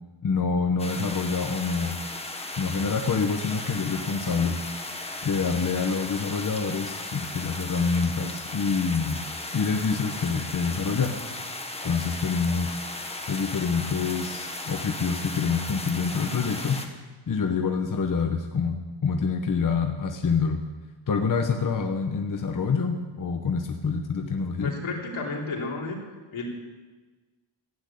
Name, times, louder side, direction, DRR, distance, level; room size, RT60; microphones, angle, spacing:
voice 1, 0.2-2.0 2.6-4.6 5.2-9.2 9.5-11.1 11.8-12.8 13.3-16.8 17.3-20.6 21.1-24.7, left 5 dB, 45° left, 4 dB, 1.0 m, -26 dB
sound 1, 0.8-16.9, left 2 dB, 15° left, 1.2 m, -36 dB
voice 2, 24.6-26.0 26.3-26.4, left 3 dB, 80° left, -1 dB, 3.3 m, -32 dB
14.0 x 9.0 x 8.5 m, 1.3 s
wide cardioid pair, 165°, 46 cm